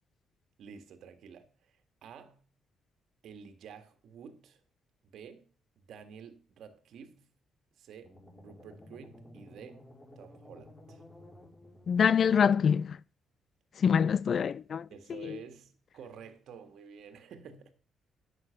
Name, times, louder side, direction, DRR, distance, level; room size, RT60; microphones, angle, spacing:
voice 1, 0.6-2.5 3.2-4.6 5.1-7.3 7.8-11.0 14.9-17.7, right 7 dB, 70° right, 1.7 m, -50 dB
sound 1, 8.0-12.3, left 1 dB, 20° left, 3.7 m, -54 dB
voice 2, 11.9-13.0 13.8-14.9 15.2-15.4, left 7 dB, 55° left, 0.4 m, -25 dB
10.0 x 7.7 x 5.8 m
supercardioid pair, 55°, 0 cm